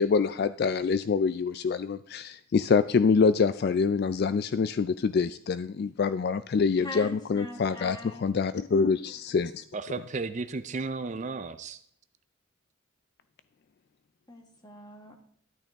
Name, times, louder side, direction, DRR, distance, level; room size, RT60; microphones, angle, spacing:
voice 1, 0.0-9.6, left 5 dB, 50° left, 13 dB, 0.3 m, -25 dB
voice 2, 6.8-8.2 14.3-15.2, left 1 dB, 20° left, 3 dB, 1.6 m, -42 dB
voice 3, 9.7-11.8, right 3 dB, 35° right, 11 dB, 0.4 m, -34 dB
13.0 x 8.8 x 3.5 m, 0.66 s
head